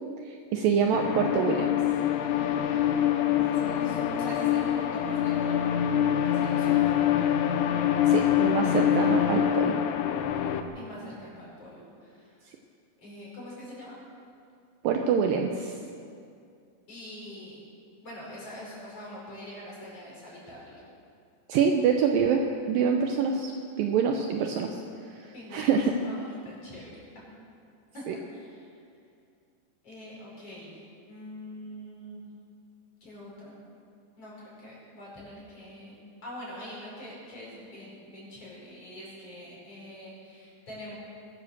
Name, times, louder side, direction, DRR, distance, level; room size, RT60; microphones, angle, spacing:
voice 1, 0.5-1.7 8.1-9.8 14.8-15.7 21.5-22.4 22.7-23.5 23.8-24.8 25.5-25.9 28.1-28.2, right 6 dB, 90° right, 3 dB, 2.0 m, -25 dB
sound 1, 0.9-10.6, left 10 dB, 80° left, 2.7 m, -25 dB
voice 2, 3.2-5.7 6.2-6.9 10.7-12.5 13.0-14.0 16.9-17.6 18.0-20.8 25.3-27.2 27.9-28.7 29.8-30.8 31.1-32.2 33.0-33.6 34.2-36.0 36.2-41.0, left 1 dB, 35° left, -6 dB, 5.9 m, -44 dB
21.5 x 10.5 x 6.6 m, 2.4 s
omnidirectional pair, 5.1 m